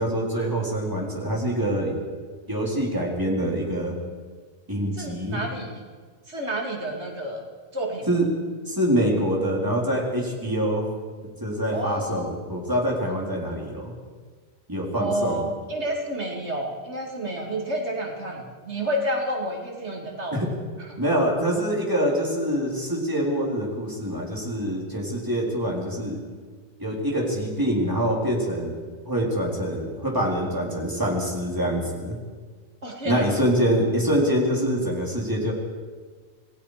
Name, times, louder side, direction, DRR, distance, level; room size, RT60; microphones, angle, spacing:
voice 1, 0.0-2.0 2.5-3.9 4.7-5.4 8.1-8.3 8.7-10.9 11.4-13.9 14.7-15.4 20.3-20.5 21.0-26.2 26.8-28.7 29.0-32.2 33.0-35.5, equal, 20° right, -2 dB, 4.2 m, -25 dB
voice 2, 4.9-5.8 6.3-7.5 7.7-8.1 11.7-12.3 14.9-20.4 20.8-21.0 32.8-33.4, right 1 dB, 80° right, 0 dB, 3.0 m, -30 dB
27.5 x 19.0 x 5.1 m, 1.5 s
omnidirectional pair, 1.1 m